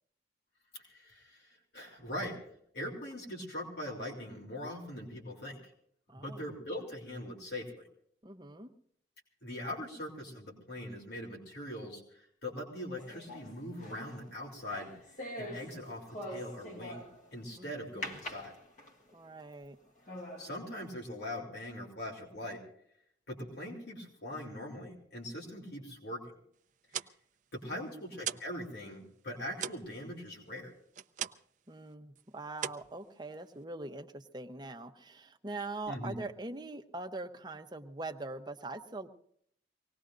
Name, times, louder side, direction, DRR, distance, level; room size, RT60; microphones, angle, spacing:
voice 1, 0.7-2.4 2.7-5.7 6.1-7.9 9.4-14.9 15.4-18.5 20.4-22.6 23.3-26.3 27.5-30.7 35.9-36.2, left 1 dB, 70° left, -1 dB, 3.4 m, -41 dB
voice 2, 6.1-6.4 8.2-8.7 17.6-18.2 19.1-19.8 27.7-28.0 31.7-39.1, right 2 dB, 25° right, 4 dB, 0.9 m, -43 dB
sound 1, 13.0-17.4 18.0-19.1 19.6-19.7 20.1-20.5, left 1 dB, 45° left, 1.5 m, -44 dB
sound 2, 26.7-28.6 28.9-31.6 31.9-32.2 32.5-33.6, right 9 dB, 45° right, 0.5 m, -41 dB
25.0 x 18.5 x 2.6 m, 0.67 s
head